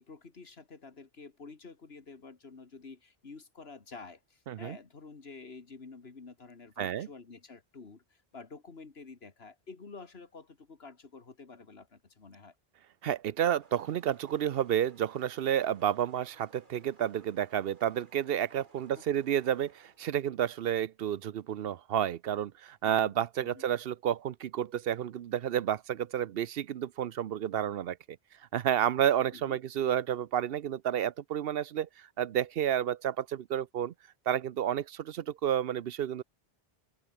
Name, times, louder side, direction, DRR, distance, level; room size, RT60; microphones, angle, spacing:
voice 1, 0.0-12.5 18.9-19.0 22.8-23.1 23.5-23.6 29.3-29.6, left 4 dB, 80° left, 2.3 m, -49 dB
voice 2, 4.5-4.8 6.8-7.1 13.0-28.0 28.5-33.9 34.3-36.2, right 10 dB, 70° right, 0.8 m, -30 dB
sound 1, 13.6-20.0, right 2 dB, 50° right, 2.9 m, -61 dB
omnidirectional pair, 1.0 m